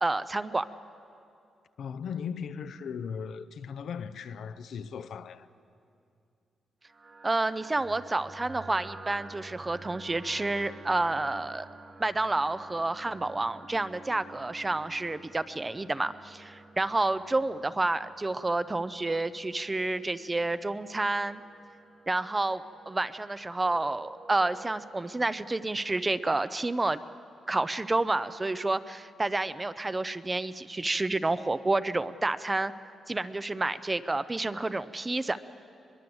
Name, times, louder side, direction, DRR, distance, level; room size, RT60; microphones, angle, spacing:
voice 1, 0.0-0.7 7.2-11.7 12.0-21.4 22.1-27.0 27.5-32.7 33.1-35.4, right 2 dB, 15° right, 0.6 m, -29 dB
voice 2, 1.8-5.5, left 6 dB, 75° left, 0.7 m, -37 dB
Abstract Guitar Resonated, 6.9-26.6, right 3 dB, 35° right, 1.3 m, -51 dB
22.5 x 22.5 x 7.9 m
wide cardioid pair, 135°, 0 cm